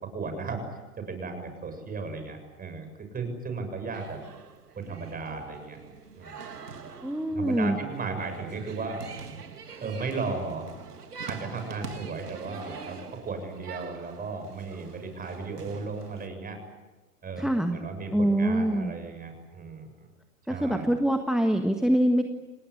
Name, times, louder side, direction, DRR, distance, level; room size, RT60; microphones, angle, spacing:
voice 1, 0.1-0.6 1.0-2.9 3.1-4.2 4.8-5.8 6.2-6.4 7.3-9.0 9.8-10.7 11.3-13.0 13.2-16.6 17.2-20.1 20.5-20.9, right 4 dB, 20° right, 7 dB, 7.3 m, -35 dB
sound 1, 3.9-16.3, right 5 dB, 90° right, 2.4 m, -44 dB
voice 2, 7.0-7.8 17.4-17.8 18.1-18.9 20.5-22.2, right 1 dB, ahead, 6 dB, 1.6 m, -24 dB
28.5 x 19.0 x 10.0 m, 1.2 s
hypercardioid pair, 110°, 45 cm